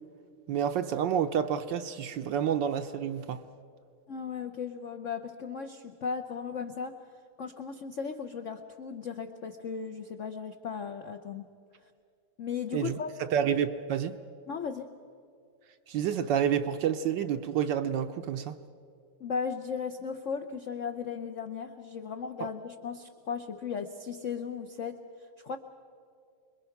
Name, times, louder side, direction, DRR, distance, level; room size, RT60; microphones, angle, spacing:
voice 1, 0.5-3.4 12.7-13.0 13.3-14.2 15.9-18.5 22.4-22.5, right 8 dB, 70° right, 1.2 m, -29 dB
voice 2, 4.1-7.0 7.4-11.5 12.4-13.1 14.5-14.9 19.2-25.0 25.4-25.6, left 6 dB, 70° left, 0.7 m, -36 dB
26.5 x 21.5 x 5.8 m
omnidirectional pair, 2.3 m